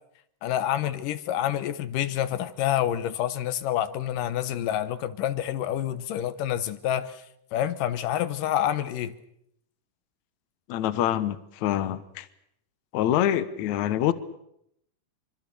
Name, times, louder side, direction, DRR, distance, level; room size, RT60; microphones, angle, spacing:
voice 1, 0.4-7.2 7.5-9.1, left 11 dB, 85° left, 12 dB, 2.7 m, -28 dB
voice 2, 10.7-12.3 12.9-14.1, left 11 dB, 70° left, 14 dB, 2.3 m, -25 dB
25.0 x 24.0 x 6.9 m, 0.75 s
omnidirectional pair, 3.7 m